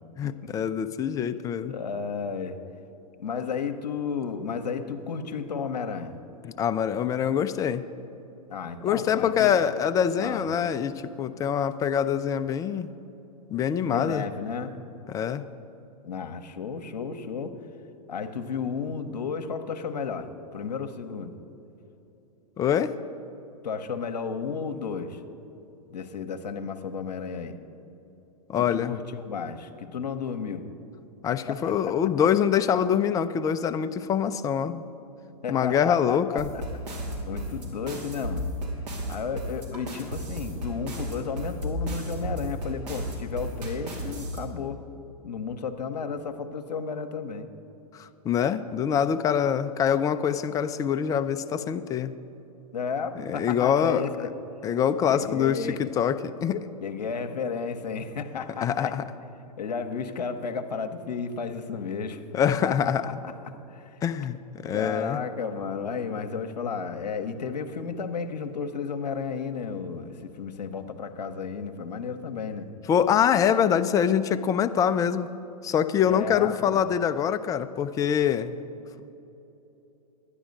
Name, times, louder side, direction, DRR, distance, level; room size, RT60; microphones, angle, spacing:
voice 1, 0.2-1.7 6.4-7.8 8.8-12.9 13.5-14.2 15.1-15.4 22.6-23.0 28.5-28.9 31.2-34.8 35.5-36.5 47.9-52.1 53.3-54.1 54.6-56.7 58.6-59.0 62.3-63.0 64.0-65.2 72.9-75.3 75.6-78.6, left 8 dB, 15° left, 11 dB, 0.4 m, -25 dB
voice 2, 1.7-2.6 3.2-6.1 8.5-9.7 10.2-10.5 13.9-14.7 16.0-17.6 18.1-21.3 23.6-25.2 25.9-27.6 28.6-30.7 31.4-31.7 35.4-36.6 37.3-38.5 39.1-44.8 45.2-47.5 52.7-54.3 55.1-55.8 56.8-59.0 59.6-62.2 62.6-62.7 63.0-64.0 64.7-72.7 76.0-76.8, left 5 dB, 85° left, 6 dB, 0.8 m, -33 dB
sound 1, 36.4-44.4, equal, 75° right, 3.0 m, -33 dB
12.0 x 9.9 x 5.2 m, 3.0 s
hypercardioid pair, 110°, 21 cm